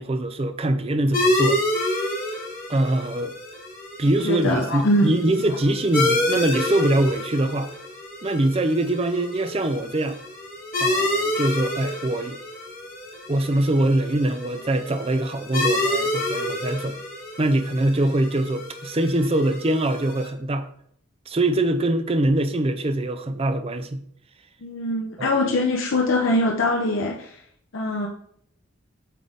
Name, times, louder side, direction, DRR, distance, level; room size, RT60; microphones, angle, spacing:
voice 1, 0.0-1.6 2.7-3.3 4.0-7.7 8.2-10.2 10.8-12.4 13.3-17.0 17.4-20.7 21.3-24.0 25.2-25.6, right 1 dB, 30° right, 0.4 m, -23 dB
sound 1, 1.1-20.3, left 1 dB, 40° left, 1.6 m, -28 dB
voice 2, 4.2-5.1 5.5-5.6 24.6-27.4 27.7-28.1, left 1 dB, 70° left, 0.7 m, -23 dB
7.6 x 3.9 x 3.5 m
head